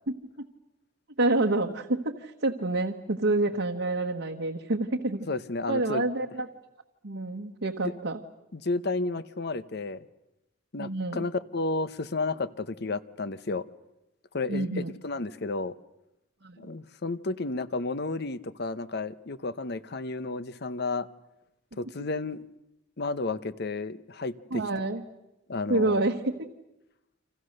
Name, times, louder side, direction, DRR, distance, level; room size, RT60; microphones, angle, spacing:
voice 1, 1.2-5.3 5.7-6.5 7.0-8.2 10.8-11.3 14.5-14.9 16.4-16.6 24.5-25.0 25.7-26.5, right 2 dB, 75° right, 1 dB, 1.4 m, -28 dB
voice 2, 5.3-6.0 8.5-10.0 10.7-13.6 14.3-15.7 16.6-21.1 21.8-22.5 23.0-24.6 25.5-26.0, left 3 dB, 55° left, 15 dB, 0.9 m, -32 dB
29.5 x 26.0 x 6.7 m, 0.92 s
head